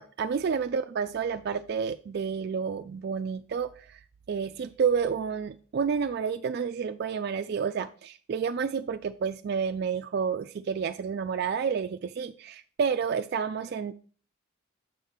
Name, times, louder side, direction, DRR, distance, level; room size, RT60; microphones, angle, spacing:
voice 1, 0.0-4.0 4.3-13.9, right 6 dB, 50° right, 10 dB, 0.3 m, -30 dB
7.3 x 5.6 x 3.5 m, 0.41 s
head